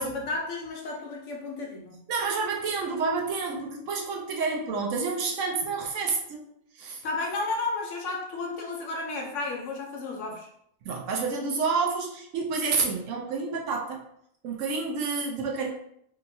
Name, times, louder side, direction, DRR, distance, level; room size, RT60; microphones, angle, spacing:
voice 1, 0.0-2.0 7.0-10.5, left 3 dB, 65° left, 0 dB, 0.9 m, -32 dB
voice 2, 2.1-6.4 6.8-7.0 10.8-14.0 14.4-15.7, right 4 dB, 70° right, 1 dB, 0.9 m, -29 dB
2.8 x 2.7 x 2.6 m, 0.71 s
omnidirectional pair, 1.4 m